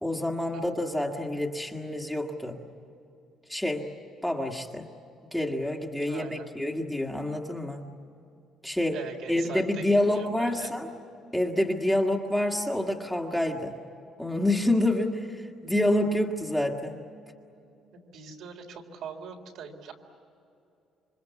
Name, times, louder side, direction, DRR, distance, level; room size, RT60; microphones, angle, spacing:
voice 1, 0.0-2.6 3.5-3.9 4.2-4.9 5.3-7.9 8.6-9.0 9.3-10.9 11.3-13.8 14.2-17.0, left 1 dB, ahead, 1 dB, 1.7 m, -27 dB
voice 2, 6.1-6.5 8.9-10.7 18.1-19.9, right 6 dB, 70° right, 2 dB, 3.9 m, -41 dB
27.5 x 25.0 x 8.3 m, 2.6 s
cardioid pair, 155°, 0 cm